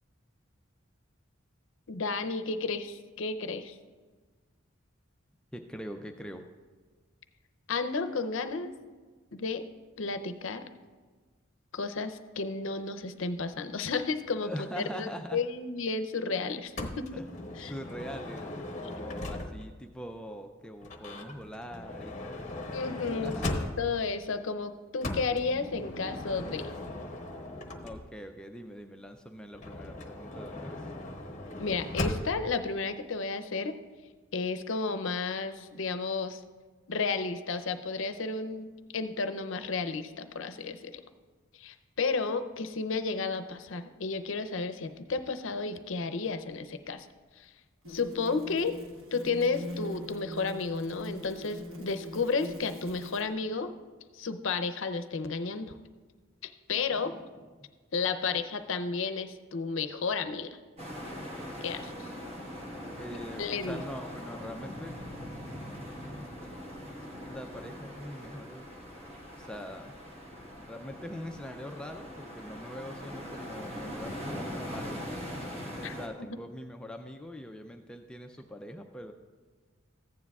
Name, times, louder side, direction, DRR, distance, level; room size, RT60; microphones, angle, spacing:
voice 1, 1.9-3.8 7.7-8.7 9.3-9.6 10.0-10.6 11.7-17.1 17.6-17.7 22.7-26.7 31.6-33.8 34.3-36.4 36.9-38.7 38.9-41.0 41.5-47.1 47.4-47.5 47.9-48.7 49.1-53.7 54.1-55.7 56.4-57.1 57.9-60.5 61.6-62.1 63.4-63.8 75.8-75.9, left 4 dB, 65° left, 9 dB, 0.6 m, -32 dB
voice 2, 5.5-6.4 14.4-15.4 17.1-17.2 17.6-18.5 18.8-22.8 23.1-23.5 27.8-30.9 56.9-57.2 57.6-57.7 63.0-65.0 66.4-66.5 67.2-68.6 69.4-69.9 70.6-75.2 75.9-79.1, equal, 5° left, 4 dB, 0.4 m, -43 dB
Motor vehicle (road) / Sliding door, 16.8-19.8 20.8-24.1 25.0-28.3 29.5-32.5, left 2 dB, 35° left, 0.9 m, -38 dB
sound 1, 46.2-46.3 47.8-53.3, left 1 dB, 65° right, 1.2 m, -42 dB
sound 2, 60.8-76.1, equal, 30° right, 1.4 m, -41 dB
15.0 x 9.7 x 2.4 m, 1.4 s
head